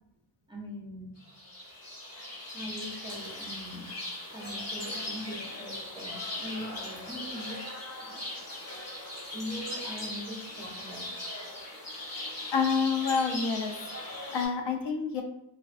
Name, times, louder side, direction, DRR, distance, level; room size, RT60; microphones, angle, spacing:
voice 1, 0.5-1.2 2.5-4.0 4.3-8.2 9.3-11.1, equal, 10° right, -3 dB, 0.3 m, -41 dB
sound 1, 1.2-14.5, left 1 dB, 35° left, 0.8 m, -39 dB
voice 2, 12.0-13.9 14.3-15.2, left 5 dB, 70° left, 3 dB, 0.6 m, -29 dB
2.5 x 2.2 x 2.3 m, 0.84 s
wide cardioid pair, 140°, 44 cm